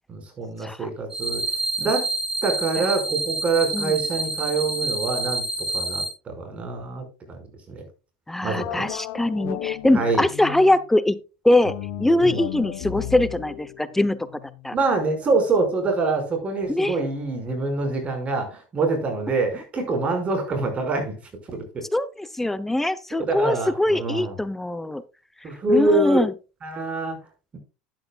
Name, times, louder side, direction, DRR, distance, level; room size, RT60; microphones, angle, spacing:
voice 1, 0.1-1.4 1.8-2.1 2.4-7.9 8.4-8.9 9.9-10.3 12.2-12.4 14.7-21.2 21.5-21.8 23.2-24.4 25.4-26.3 26.6-27.2 27.5-27.6, right 3 dB, 30° right, 4 dB, 5.6 m, -25 dB
sound 1, 1.1-6.1, right 2 dB, 10° right, 4.1 m, -28 dB
voice 2, 8.3-11.2 11.4-14.2 14.6-14.7 16.7-17.0 21.9-25.0 25.7-26.3, left 1 dB, 5° left, 15 dB, 0.8 m, -22 dB
sound 2, 8.6-10.8 11.6-14.9, left 12 dB, 70° left, 1.1 m, -35 dB
12.5 x 10.5 x 2.4 m, 0.30 s
supercardioid pair, 110°, 5 cm